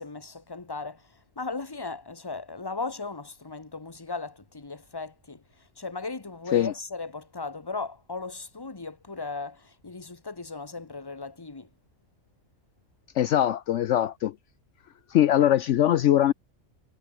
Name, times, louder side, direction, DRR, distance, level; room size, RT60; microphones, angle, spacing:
voice 1, 0.0-11.7, left 3 dB, 20° left, 1.4 m, -37 dB
voice 2, 13.2-14.3 15.1-16.3, left 11 dB, 70° left, 0.9 m, -21 dB
omnidirectional pair, 1.4 m